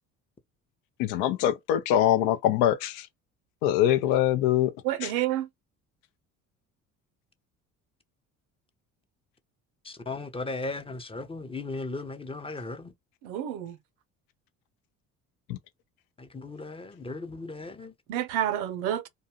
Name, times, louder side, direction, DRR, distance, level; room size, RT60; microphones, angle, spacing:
voice 1, 1.0-3.1 3.6-4.7 5.0-5.1 15.5-15.6, left 11 dB, 65° left, 0.5 m, -23 dB
voice 2, 4.8-5.5 13.2-13.8 18.1-19.1, right 12 dB, 75° right, 0.6 m, -29 dB
voice 3, 9.8-12.9 16.2-17.9, left 3 dB, 15° left, 0.6 m, -36 dB
2.6 x 2.3 x 2.8 m
hypercardioid pair, 55°, 41 cm